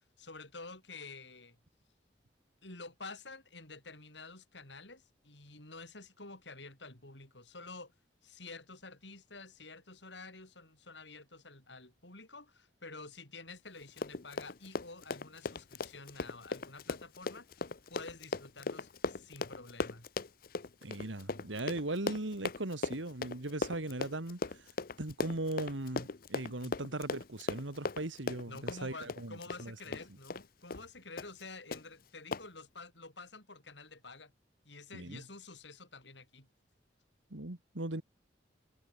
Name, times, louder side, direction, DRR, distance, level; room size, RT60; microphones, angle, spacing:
voice 1, 0.2-1.6 2.6-7.9 8.2-17.5 17.9-20.1 26.6-26.7 28.5-34.3 34.6-36.5, left 3 dB, 70° left, 7.6 m, -49 dB
Run, 13.8-30.5 30.7-30.9 31.2-31.4 31.7-31.8 32.3-32.4, left 3 dB, 50° left, 0.8 m, -38 dB
voice 2, 20.8-24.7 25.0-29.8 34.9-35.2 37.3-38.0, right 2 dB, 90° right, 2.2 m, -39 dB
head